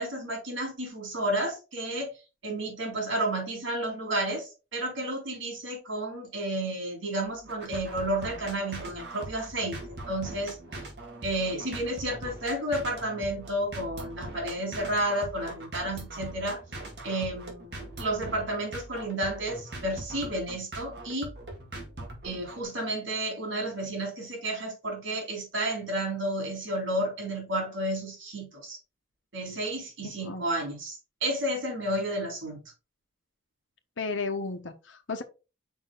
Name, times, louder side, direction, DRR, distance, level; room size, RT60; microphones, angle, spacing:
voice 1, 0.0-2.1 2.4-10.6 11.2-16.6 17.0-21.3 22.2-28.8 29.3-32.6, right 1 dB, 90° right, 3.5 m, -31 dB
sound 1, 7.2-22.6, right 1 dB, 60° right, 2.0 m, -41 dB
voice 2, 34.0-35.2, left 4 dB, 90° left, 1.0 m, -33 dB
5.5 x 4.7 x 3.8 m
head